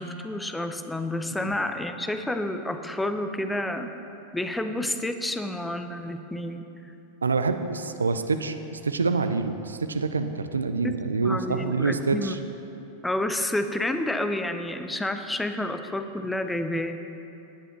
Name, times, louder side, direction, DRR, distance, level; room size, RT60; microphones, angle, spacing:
voice 1, 0.0-3.9 4.3-6.9 10.8-11.0 11.2-12.3 13.0-16.9, left 1 dB, 5° left, 8 dB, 0.6 m, -29 dB
voice 2, 7.2-12.4, right 4 dB, 75° right, 9 dB, 0.5 m, -26 dB
17.5 x 10.0 x 3.1 m, 2.9 s
figure-of-eight pair, 90°, 0 cm